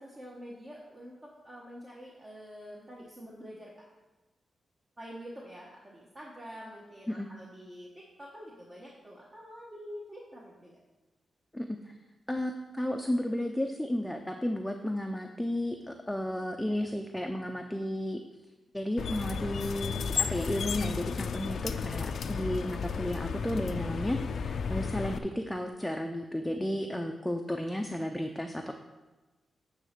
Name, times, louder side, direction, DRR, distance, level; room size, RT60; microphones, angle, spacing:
voice 1, 0.0-3.7 5.0-10.8 26.6-26.8, equal, 30° right, -4 dB, 1.4 m, -47 dB
voice 2, 11.5-12.0 12.3-18.2 18.7-28.7, left 1 dB, 5° left, 3 dB, 0.5 m, -33 dB
sound 1, 19.0-25.2, left 6 dB, 75° left, 0.4 m, -33 dB
9.0 x 3.3 x 6.7 m, 1.1 s
cardioid pair, 70°, 0 cm